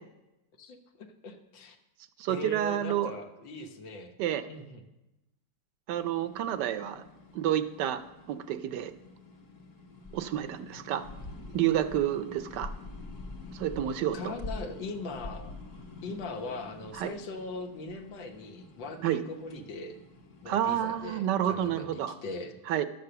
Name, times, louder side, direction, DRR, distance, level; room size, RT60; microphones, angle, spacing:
voice 1, 0.6-1.8 2.3-4.1 4.5-4.8 14.1-15.5 16.0-19.9 20.4-22.6, left 3 dB, 85° left, 5 dB, 1.7 m, -40 dB
voice 2, 2.2-3.1 4.2-4.4 5.9-7.0 7.3-8.0 8.3-8.9 10.1-11.0 11.5-12.7 13.5-14.3 17.0-17.1 19.0-19.2 20.5-22.1 22.7-22.8, right 11 dB, 75° right, 11 dB, 1.1 m, -29 dB
sound 1, 5.9-21.2, left 2 dB, 50° left, 1.4 m, -46 dB
11.5 x 6.8 x 6.7 m, 1.0 s
omnidirectional pair, 2.0 m